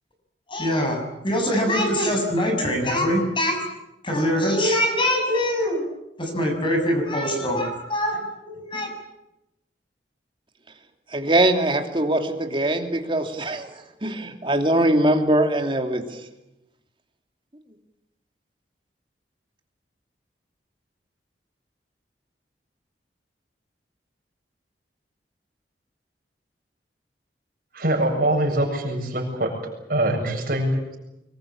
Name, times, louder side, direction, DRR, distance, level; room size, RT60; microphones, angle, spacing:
voice 1, 0.5-3.7 4.0-5.9 6.2-8.9, equal, 30° left, 3 dB, 6.6 m, -23 dB
voice 2, 11.1-16.0, right 1 dB, 30° right, 5 dB, 2.9 m, -22 dB
voice 3, 27.7-29.6 29.9-31.0, right 1 dB, 55° right, 0 dB, 7.6 m, -23 dB
25.0 x 22.5 x 8.8 m, 0.91 s
head